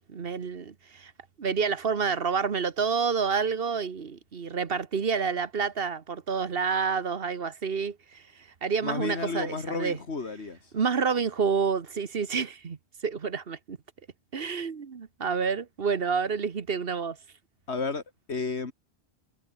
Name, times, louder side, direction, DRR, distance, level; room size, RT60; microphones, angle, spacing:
voice 1, 0.1-1.1 1.4-8.2 8.6-10.0 10.7-12.8 13.0-13.8 14.3-17.2, right 5 dB, 60° right, 1.4 m, -28 dB
voice 2, 8.8-10.6 17.7-18.0 18.3-18.7, left 4 dB, 90° left, 2.6 m, -32 dB
omnidirectional pair, 1.1 m